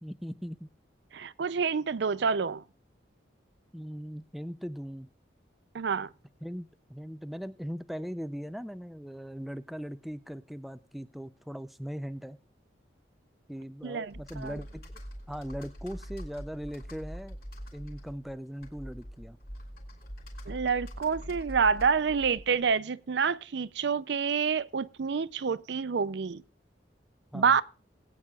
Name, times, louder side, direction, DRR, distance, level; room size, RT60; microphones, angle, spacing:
voice 1, 0.0-0.7 3.7-5.1 6.4-12.4 13.5-14.9 15.3-17.4 17.7-19.4 27.3-27.6, equal, ahead, 0.4 m, -39 dB
voice 2, 1.1-2.6 5.7-6.1 13.8-14.5 20.5-26.4 27.3-27.6, right 6 dB, 70° right, 0.5 m, -28 dB
Computer keyboard, 14.1-22.7, equal, 50° left, 3.5 m, -44 dB
21.0 x 9.1 x 2.4 m
head